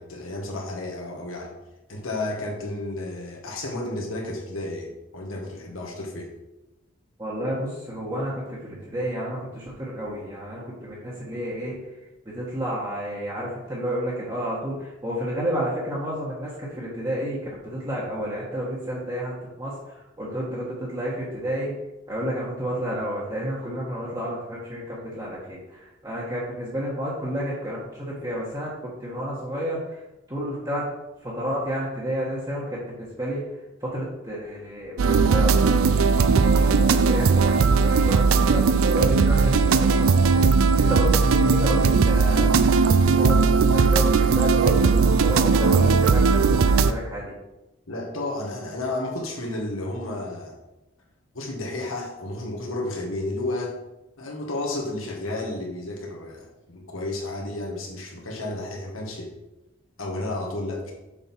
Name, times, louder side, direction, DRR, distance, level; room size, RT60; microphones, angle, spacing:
voice 1, 0.0-1.5 1.9-6.3 47.9-50.6 51.3-53.8 54.2-59.3 60.0-60.9, left 2 dB, 80° left, -1 dB, 1.8 m, -32 dB
voice 2, 7.2-11.8 12.2-21.7 22.1-30.0 30.3-30.9 31.2-40.5 40.8-42.5 43.0-47.3, equal, 20° right, -7 dB, 1.3 m, -31 dB
sound 1, 35.0-46.9, right 4 dB, 85° right, 0.4 m, -18 dB
6.9 x 5.6 x 4.4 m, 0.97 s
head